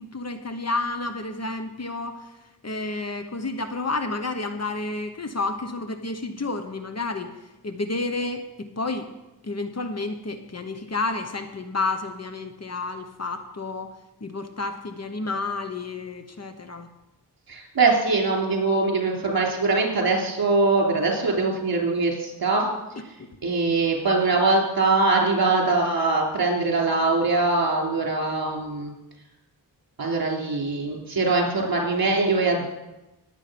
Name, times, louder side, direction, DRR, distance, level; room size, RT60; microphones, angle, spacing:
voice 1, 0.0-2.3 2.6-7.3 7.6-9.1 9.4-13.9 14.2-16.9 23.0-23.3, left 3 dB, 35° left, 7 dB, 1.2 m, -30 dB
voice 2, 17.5-22.7 23.4-28.9 30.0-32.7, right 3 dB, 55° right, 0 dB, 3.5 m, -22 dB
19.5 x 8.3 x 5.3 m, 1.0 s
wide cardioid pair, 95°, 42 cm